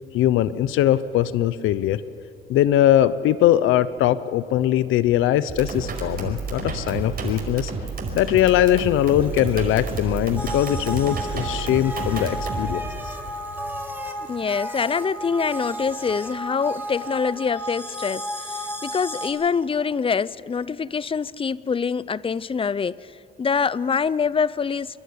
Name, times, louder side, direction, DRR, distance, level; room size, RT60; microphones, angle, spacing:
voice 1, 0.1-2.0 2.5-7.7 8.1-12.9, left 12 dB, 90° left, 16 dB, 0.6 m, -21 dB
sound 1, 5.5-12.7, right 4 dB, 50° right, 5.2 m, -30 dB
Bicycle, 8.3-17.7, right 1 dB, 10° right, 2.3 m, -45 dB
sound 2, 10.4-19.3, equal, 10° left, 5.5 m, -33 dB
voice 2, 14.3-23.1 23.4-25.0, left 5 dB, 25° left, 20 dB, 0.5 m, -25 dB
27.5 x 11.5 x 9.8 m, 2.8 s
cardioid pair, 90°, 20 cm